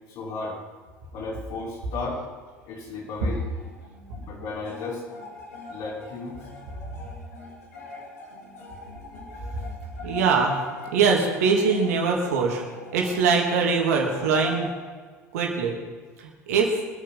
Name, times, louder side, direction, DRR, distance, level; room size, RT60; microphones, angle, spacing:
voice 1, 0.1-0.6 1.1-2.2 2.7-3.4 4.2-5.0 5.7-6.4, left 3 dB, 50° left, -4 dB, 5.6 m, -34 dB
sound 1, 3.2-14.7, left 2 dB, 65° left, 3.6 m, -42 dB
voice 2, 10.0-10.6 10.9-12.6 12.9-14.7 15.3-15.8 16.2-16.7, right 5 dB, 60° right, 1 dB, 2.9 m, -22 dB
24.0 x 9.0 x 5.6 m, 1.5 s
figure-of-eight pair, 70°, 9 cm